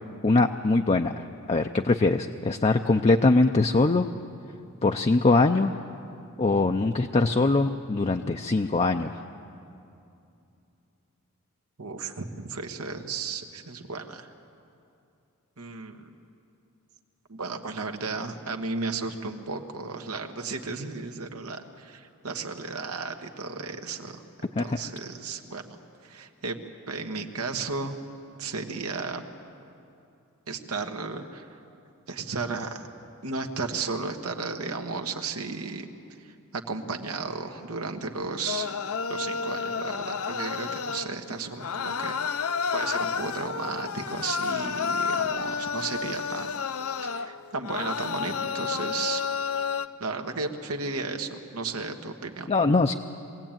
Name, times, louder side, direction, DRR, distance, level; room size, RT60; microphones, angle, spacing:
voice 1, 0.2-4.1 4.8-5.8 6.4-9.2 24.5-24.9 52.5-52.9, left 3 dB, 30° left, 5 dB, 0.5 m, -22 dB
voice 2, 11.8-14.3 15.6-16.1 17.3-24.2 24.6-25.6 26.0-26.6 26.9-28.0 28.4-29.2 30.5-31.6 32.1-32.9 33.2-35.9 36.2-38.7 39.1-46.5 47.0-49.2 50.0-52.5, right 4 dB, 90° right, 4 dB, 1.4 m, -34 dB
sound 1, 38.5-41.2 41.6-49.9, left 6 dB, 75° left, 0.7 m, -30 dB
22.5 x 16.5 x 9.0 m, 2.6 s
head